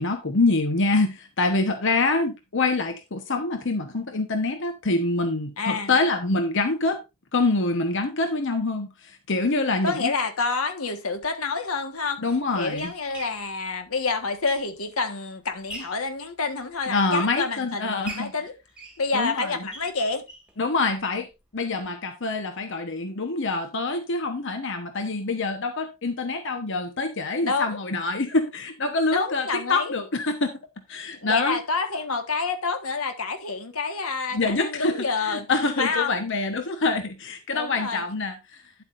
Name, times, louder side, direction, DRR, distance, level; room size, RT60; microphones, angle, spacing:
voice 1, 0.0-7.0 7.3-10.1 12.2-12.9 16.9-18.3 19.1-19.5 20.6-21.3 21.5-30.5 30.9-31.6 34.3-34.9 35.2-38.3, left 3 dB, 60° left, 1.1 m, -25 dB
voice 2, 5.6-5.9 9.8-12.2 12.5-18.5 19.0-20.2 27.4-27.8 29.1-29.9 31.2-35.5 35.8-36.1 37.5-38.0, left 4 dB, 80° left, 1.5 m, -28 dB
sound 1, 11.1-11.3 12.1-15.0 15.4-16.1 16.6-17.6 18.0-20.6 20.9-21.0 21.3-21.4 21.8-21.9, right 2 dB, 5° right, 2.1 m, -43 dB
10.5 x 8.1 x 2.6 m
head